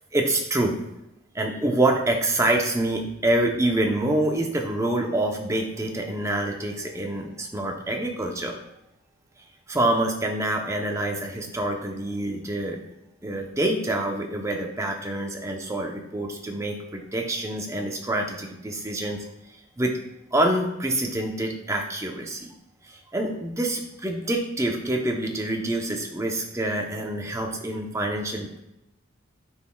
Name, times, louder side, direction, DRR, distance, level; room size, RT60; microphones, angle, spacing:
voice 1, 0.1-0.8 1.3-8.6 9.7-12.8 13.2-19.2 19.8-19.9 20.3-22.5 22.9-28.6, right 1 dB, 15° right, 2 dB, 0.7 m, -26 dB
8.9 x 6.3 x 2.3 m, 0.88 s
head